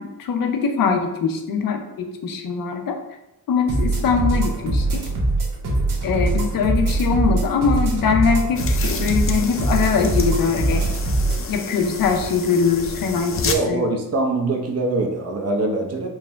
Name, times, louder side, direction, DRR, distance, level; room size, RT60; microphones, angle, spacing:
voice 1, 0.0-3.0 3.5-5.0 6.0-10.8 11.5-13.8, left 5 dB, 80° left, 4 dB, 0.6 m, -22 dB
sound 1, 3.7-11.4, right 2 dB, 70° right, 1.0 m, -22 dB
sound 2, 8.6-13.5, left 5 dB, 40° left, 0.5 m, -30 dB
voice 2, 13.4-16.1, right 2 dB, 45° right, 2 dB, 0.8 m, -23 dB
4.5 x 2.1 x 3.4 m, 0.90 s
cardioid pair, 85°, 34 cm